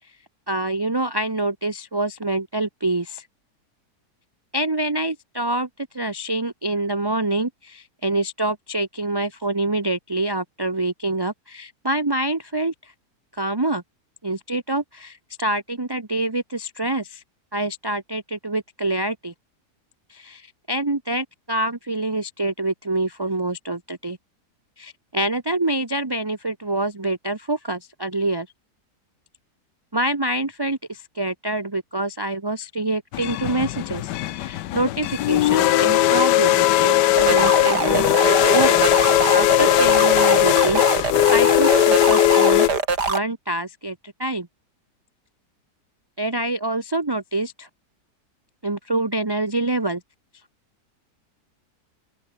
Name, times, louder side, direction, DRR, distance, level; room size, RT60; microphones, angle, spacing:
voice 1, 0.5-3.3 4.5-12.9 13.3-13.8 14.2-17.2 17.5-19.3 20.1-24.2 24.8-28.5 29.9-38.9 39.3-42.7 43.1-44.5 46.2-47.7 48.6-50.0, right 2 dB, 15° right, 1.2 m, -26 dB
sound 1, 33.1-42.7, left 14 dB, 85° left, 1.3 m, -18 dB
sound 2, 37.2-43.2, right 4 dB, 75° right, 3.9 m, -23 dB
open air
omnidirectional pair, 1.8 m